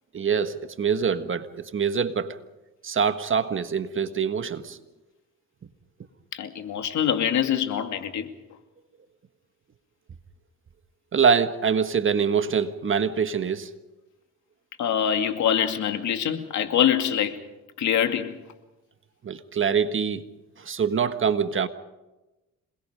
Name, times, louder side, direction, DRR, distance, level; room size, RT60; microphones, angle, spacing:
voice 1, 0.1-2.4 2.8-4.8 11.1-13.7 19.2-20.2 20.6-21.7, right 6 dB, 40° right, 1.5 m, -24 dB
voice 2, 6.3-8.3 14.8-17.4 17.8-18.4, left 9 dB, 70° left, 2.4 m, -24 dB
27.5 x 21.0 x 5.2 m
cardioid pair, 90°, 30 cm